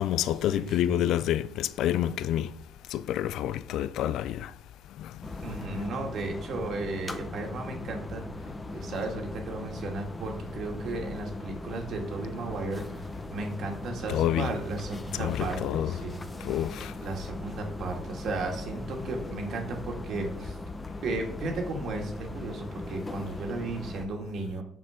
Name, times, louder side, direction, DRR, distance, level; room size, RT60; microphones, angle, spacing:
voice 1, 0.0-2.5 2.9-4.5 5.0-5.1 14.1-14.5 15.1-16.0 16.4-16.9, left 11 dB, 75° left, 0.3 m, -28 dB
voice 2, 0.5-1.0 5.4-16.2 17.0-20.6 21.0-24.6, right 3 dB, 60° right, 2.1 m, -35 dB
sound 1, 5.2-24.1, left 2 dB, 15° left, 0.8 m, -39 dB
7.2 x 6.2 x 5.1 m
cardioid pair, 115°, 0 cm